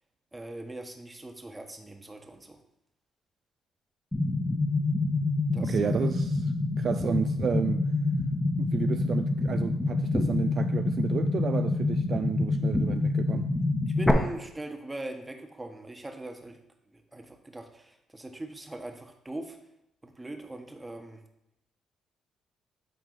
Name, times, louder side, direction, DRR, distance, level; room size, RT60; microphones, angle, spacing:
voice 1, 0.3-2.6 5.5-6.1 13.9-16.6 16.9-19.6 20.0-21.2, right 2 dB, 15° right, 1.1 m, -41 dB
sound 1, 4.1-14.1, left 2 dB, 15° left, 1.0 m, -27 dB
voice 2, 5.6-7.8 8.6-13.5, right 6 dB, 55° right, 0.3 m, -32 dB
9.1 x 4.0 x 4.0 m
supercardioid pair, 70°, 0 cm